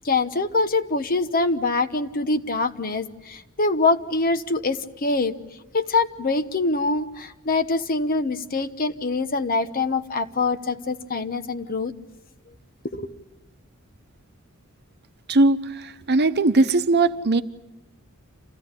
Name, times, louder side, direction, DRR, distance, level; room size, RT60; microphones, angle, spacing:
voice 1, 0.0-5.3 5.7-11.9 12.9-13.1, left 3 dB, 45° left, 1.0 m, -24 dB
voice 2, 15.3-17.4, right 2 dB, 55° right, 1.0 m, -19 dB
27.0 x 16.0 x 9.7 m
head